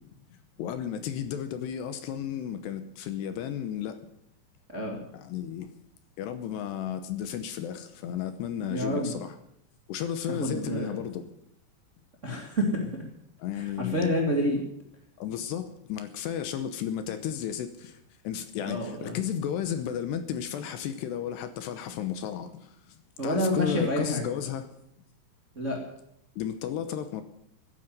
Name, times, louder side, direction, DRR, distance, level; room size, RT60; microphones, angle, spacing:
voice 1, 0.6-4.0 5.1-5.7 6.2-9.4 9.9-11.2 13.4-14.2 15.2-22.7 23.2-24.7 26.4-27.2, left 9 dB, 75° left, 2.8 m, -33 dB
voice 2, 8.7-9.1 10.3-10.9 12.2-12.9 13.5-14.6 18.6-19.2 23.2-24.3 25.5-25.8, equal, 35° right, 1.2 m, -28 dB
14.5 x 9.9 x 9.3 m
omnidirectional pair, 5.4 m